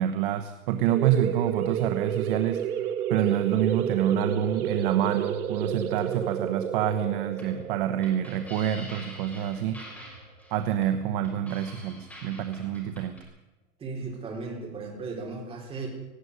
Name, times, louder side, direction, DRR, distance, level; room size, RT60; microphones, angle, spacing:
voice 1, 0.0-2.7 3.1-9.8 10.5-13.2, right 10 dB, 35° right, 9 dB, 1.1 m, -27 dB
sound 1, 0.9-10.2, right 9 dB, 85° right, 1.8 m, -31 dB
sound 2, 7.3-13.2, equal, 5° left, 5.3 m, -46 dB
voice 2, 13.8-15.9, right 4 dB, 15° right, 0 dB, 4.1 m, -36 dB
18.0 x 16.0 x 9.7 m, 1.0 s
supercardioid pair, 175°, 43 cm